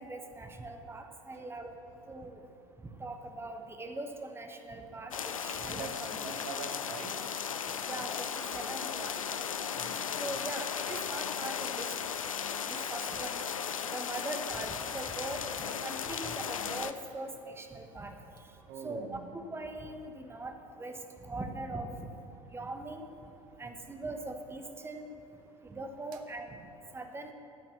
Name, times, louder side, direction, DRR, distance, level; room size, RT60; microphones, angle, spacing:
voice 1, 0.0-1.7 2.1-2.3 3.0-5.1 5.4-5.9 6.2-6.4 7.9-9.1 10.2-11.8 12.7-13.4 13.9-15.4 15.8-18.1 18.8-19.1 19.5-20.5 20.8-20.9 21.3-22.1 22.5-23.0 23.6-25.1 25.7-26.5 26.9-27.3, right 2 dB, 15° right, 5 dB, 1.1 m, -41 dB
sound 1, 5.1-16.9, left 7 dB, 80° left, 0.4 m, -36 dB
voice 2, 5.5-7.1 9.7-10.0 18.7-19.3, right 6 dB, 55° right, 7 dB, 1.0 m, -44 dB
13.5 x 5.9 x 7.2 m, 2.9 s
figure-of-eight pair, 65°, 17 cm